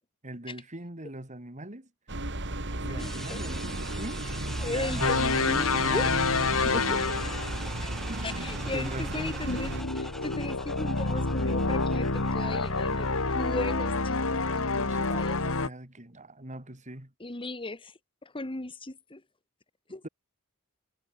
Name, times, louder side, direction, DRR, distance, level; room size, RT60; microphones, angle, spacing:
voice 1, 0.2-1.9 2.7-4.2 4.6-6.2 6.6-7.0 8.1-9.3 14.7-17.1 20.0-20.1, right 1 dB, 35° right, 3.9 m, -41 dB
sound 1, 2.1-9.8, right 1 dB, 55° right, 5.0 m, -34 dB
voice 2, 2.8-3.4 4.6-6.2 7.8-7.9 8.2-15.4 17.2-19.2 19.9-20.0, left 2 dB, 25° left, 1.6 m, -37 dB
sound 2, 3.0-15.0, equal, ahead, 5.5 m, -43 dB
sound 3, 5.0-7.7 9.4-15.7, left 3 dB, 70° left, 2.4 m, -28 dB
head